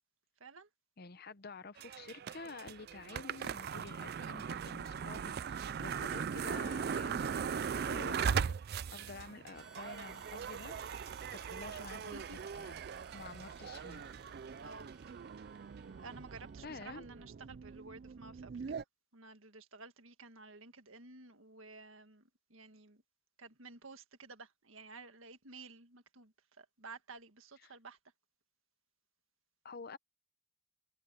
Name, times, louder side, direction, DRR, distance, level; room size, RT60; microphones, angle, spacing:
voice 1, 1.0-8.5 8.9-12.3 12.6-12.8 13.1-14.0 16.6-17.1 27.6-27.7 29.6-30.0, left 4 dB, 45° left, 0.7 m, -49 dB
sound 1, 1.8-18.8, right 7 dB, 45° right, 0.3 m, -40 dB
Harmonica, 9.5-16.8, right 1 dB, 5° right, 3.7 m, -63 dB
voice 2, 11.8-12.4 14.6-14.9 16.0-18.8 19.1-23.0 23.4-28.0, right 3 dB, 65° right, 1.8 m, -53 dB
head